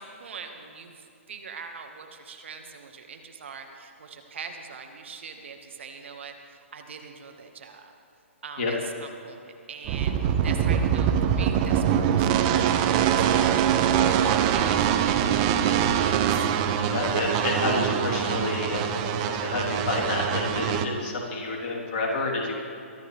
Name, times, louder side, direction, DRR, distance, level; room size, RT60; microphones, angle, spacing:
voice 1, 0.0-7.9 8.4-10.1 10.4-16.5, right 5 dB, 60° right, 4 dB, 1.6 m, -42 dB
sound 1, 9.9-20.8, right 9 dB, 30° right, 0.9 m, -23 dB
voice 2, 16.8-22.6, left 3 dB, 40° left, -3 dB, 3.5 m, -29 dB
23.0 x 13.0 x 3.4 m, 2.6 s
figure-of-eight pair, 125°, 7 cm